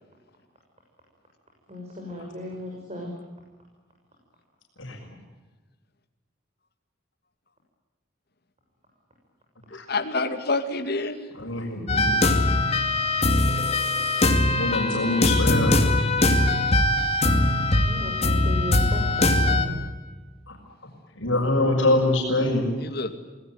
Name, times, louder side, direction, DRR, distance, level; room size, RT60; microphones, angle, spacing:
voice 1, 1.7-3.1 17.8-19.8, left 1 dB, 30° right, 0 dB, 6.5 m, -36 dB
voice 2, 9.9-11.2 22.8-23.1, left 3 dB, 50° left, 6 dB, 2.3 m, -27 dB
voice 3, 11.3-12.2 14.6-15.8 20.5-20.6 21.2-22.7, left 2 dB, 75° left, -1 dB, 6.3 m, -24 dB
sound 1, 11.9-19.7, left 2 dB, 30° left, 2.5 m, -21 dB
27.0 x 19.0 x 9.5 m, 1.3 s
head